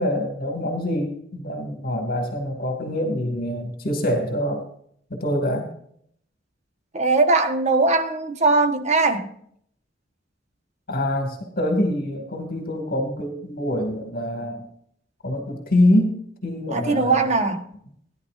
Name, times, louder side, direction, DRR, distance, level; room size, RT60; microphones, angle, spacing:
voice 1, 0.0-4.6 5.1-5.7 10.9-14.7 15.2-17.3, left 1 dB, 50° left, 2.4 m, -25 dB
voice 2, 6.9-9.3 16.7-17.6, right 3 dB, 35° right, 1.3 m, -20 dB
17.0 x 11.0 x 2.6 m
head